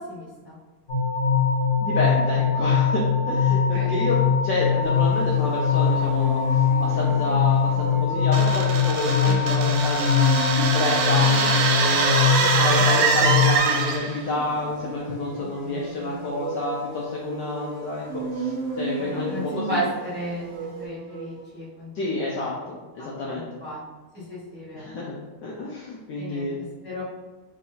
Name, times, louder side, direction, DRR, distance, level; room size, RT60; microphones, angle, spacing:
voice 1, 0.1-0.6 3.7-4.0 9.2-9.4 12.4-12.7 13.2-13.3 19.0-22.6 23.2-23.8 24.3-24.9 26.2-26.5 26.8-27.0, equal, 5° right, -9 dB, 0.9 m, -34 dB
sound 1, 0.9-13.6, left 6 dB, 55° left, 0.8 m, -22 dB
voice 2, 1.8-10.2 10.5-12.3 12.6-19.8 21.9-23.5 24.7-26.6, left 2 dB, 70° left, -4 dB, 1.1 m, -29 dB
sound 2, 4.8-21.4, right 3 dB, 45° right, 1.1 m, -36 dB
sound 3, 8.3-14.2, right 5 dB, 75° right, 1.3 m, -24 dB
3.3 x 3.1 x 3.8 m, 1.3 s
omnidirectional pair, 2.3 m